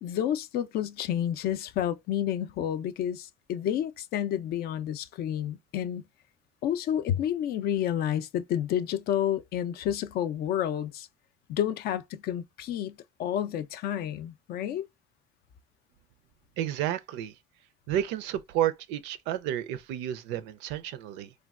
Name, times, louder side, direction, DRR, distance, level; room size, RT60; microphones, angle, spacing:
voice 1, 0.0-6.0 6.6-11.1 11.5-14.9, left 10 dB, 55° left, 0.4 m, -30 dB
voice 2, 16.6-17.3 17.9-21.3, right 11 dB, 75° right, 0.4 m, -31 dB
3.2 x 2.2 x 2.3 m
supercardioid pair, 80°, 19 cm